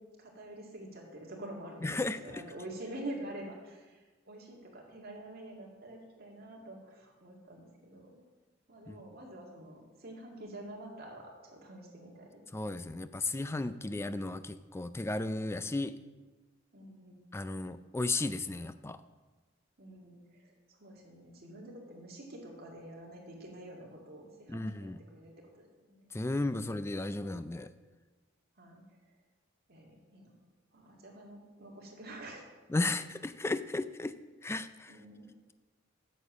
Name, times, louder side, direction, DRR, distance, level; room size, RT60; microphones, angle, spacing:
voice 1, 0.2-8.2 8.7-12.7 16.7-17.2 19.8-26.1 28.6-28.8 29.7-30.3 30.7-32.5 34.9-35.3, right 1 dB, 50° right, -2 dB, 2.1 m, -47 dB
voice 2, 1.8-2.4 8.9-9.0 12.5-15.9 17.3-19.0 24.5-25.0 26.1-27.7 32.7-34.1 34.4-34.9, left 2 dB, 15° left, 13 dB, 0.3 m, -34 dB
8.3 x 7.0 x 6.2 m, 1.3 s
head